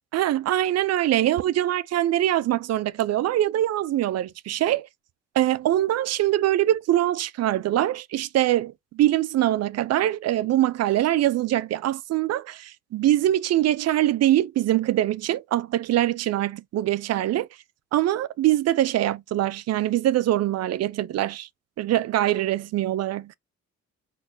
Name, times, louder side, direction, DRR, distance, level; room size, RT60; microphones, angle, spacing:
voice 1, 0.1-4.9 5.4-17.5 17.9-21.5 21.8-23.3, right 13 dB, 60° right, 0.4 m, -23 dB
4.0 x 3.1 x 2.6 m
cardioid pair, 90°, 30 cm